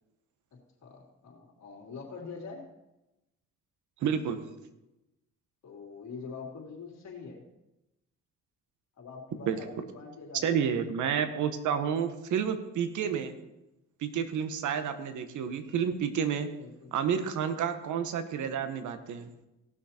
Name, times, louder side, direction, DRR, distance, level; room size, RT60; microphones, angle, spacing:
voice 1, 0.8-2.6 5.6-7.4 9.0-10.6 16.6-16.9, left 4 dB, 65° left, -2 dB, 2.9 m, -44 dB
voice 2, 4.0-4.4 9.5-9.6 10.4-13.3 14.0-16.5 16.9-19.3, right 7 dB, 75° right, 9 dB, 1.2 m, -30 dB
17.5 x 6.2 x 4.3 m, 0.96 s
cardioid pair, 90°, 30 cm